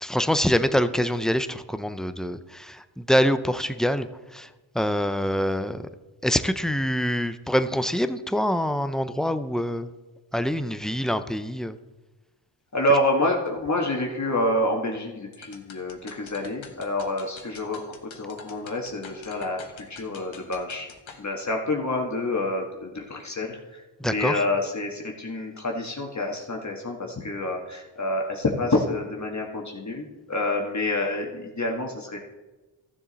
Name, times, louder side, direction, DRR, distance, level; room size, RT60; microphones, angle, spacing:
voice 1, 0.0-4.1 4.3-4.5 4.7-5.9 6.2-9.9 10.3-11.7 24.0-24.3, equal, ahead, 11 dB, 0.5 m, -25 dB
voice 2, 12.7-20.9 21.2-32.2, left 1 dB, 35° left, 0 dB, 1.6 m, -28 dB
sound 1, 15.3-21.2, left 6 dB, 65° left, 1.3 m, -47 dB
14.5 x 7.1 x 4.1 m, 1.1 s
cardioid pair, 75°, 50 cm